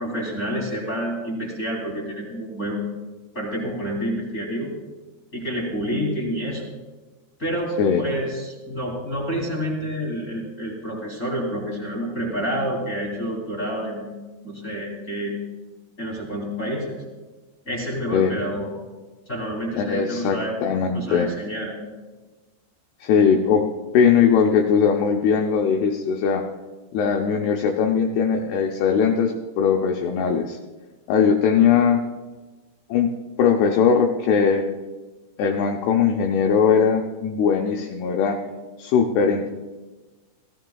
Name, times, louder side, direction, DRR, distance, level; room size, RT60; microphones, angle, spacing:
voice 1, 0.0-2.8 3.3-4.7 5.3-6.7 7.4-14.1 14.4-15.3 16.0-17.0 17.6-18.7 19.3-20.6 20.9-21.7, equal, 25° left, -4 dB, 1.8 m, -28 dB
voice 2, 19.8-21.3 23.0-23.7 23.9-26.4 26.9-30.6 31.1-32.0 32.9-34.7 35.4-38.4 38.8-39.5, left 6 dB, 80° left, 2 dB, 2.3 m, -20 dB
17.0 x 15.0 x 2.3 m, 1.2 s
omnidirectional pair, 5.3 m